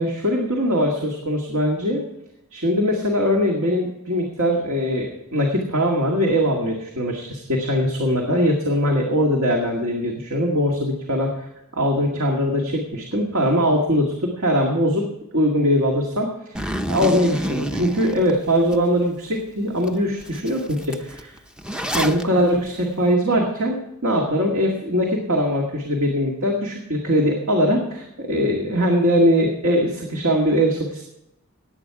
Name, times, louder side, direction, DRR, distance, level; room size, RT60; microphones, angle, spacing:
voice 1, 0.0-2.0 2.5-11.5 11.7-15.1 15.3-16.5 16.9-21.3 21.9-31.0, equal, 70° right, 0 dB, 2.0 m, -21 dB
Zipper (clothing), 16.5-18.8 19.3-19.4 19.8-19.9 20.2-22.2, equal, 5° right, 0.6 m, -28 dB
17.5 x 9.0 x 4.8 m, 0.87 s
head